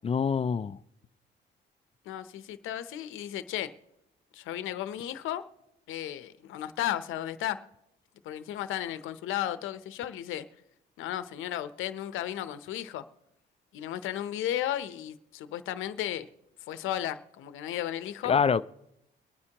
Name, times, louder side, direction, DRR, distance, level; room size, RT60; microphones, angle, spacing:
voice 1, 0.0-0.8 18.2-18.6, left 6 dB, 30° left, 0.4 m, -25 dB
voice 2, 2.1-3.7 4.3-5.4 5.9-7.6 8.2-10.5 11.0-13.0 13.7-16.3 16.7-18.3, left 12 dB, 90° left, 0.7 m, -34 dB
23.5 x 9.7 x 2.9 m
cardioid pair, 90°, 20 cm